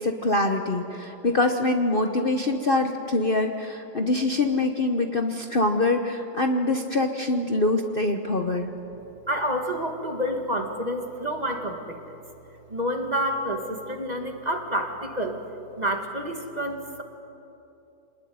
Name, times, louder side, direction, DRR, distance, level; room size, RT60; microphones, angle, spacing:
voice 1, 0.0-8.7, left 2 dB, 35° left, 4 dB, 1.2 m, -24 dB
voice 2, 9.3-12.2 12.7-15.4 15.8-17.0, equal, 25° right, 3 dB, 2.1 m, -29 dB
26.5 x 20.0 x 9.6 m, 2.9 s
omnidirectional pair, 1.7 m